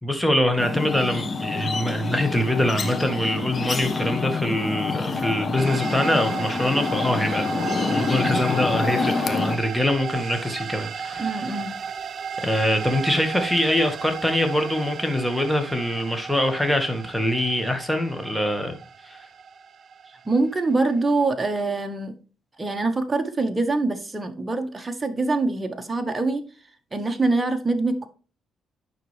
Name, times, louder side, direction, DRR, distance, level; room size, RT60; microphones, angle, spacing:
voice 1, 0.0-7.4 7.9-11.3 12.4-18.7 19.0-19.2, left 1 dB, 5° left, 1.7 m, -24 dB
sound 1, 0.6-9.6, left 4 dB, 40° left, 1.2 m, -27 dB
sound 2, 5.6-21.3, right 6 dB, 55° right, 0.5 m, -35 dB
voice 2, 11.2-11.8 20.2-22.1 22.6-26.4 26.9-28.1, right 3 dB, 20° right, 1.6 m, -24 dB
9.4 x 6.1 x 3.4 m
cardioid pair, 90°, 0 cm